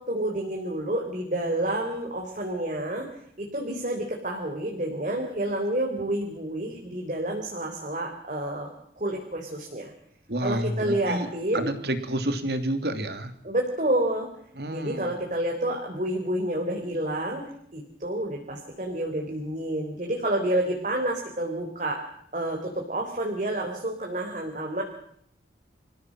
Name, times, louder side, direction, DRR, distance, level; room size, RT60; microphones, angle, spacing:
voice 1, 0.0-9.9 10.4-11.7 13.4-14.3 14.6-17.4 17.7-22.0 22.3-24.8, right 1 dB, 45° right, 1 dB, 4.1 m, -29 dB
voice 2, 10.3-11.3 11.5-13.3 14.6-15.1, right 1 dB, 60° right, 9 dB, 2.9 m, -29 dB
27.0 x 16.0 x 7.7 m, 0.70 s
head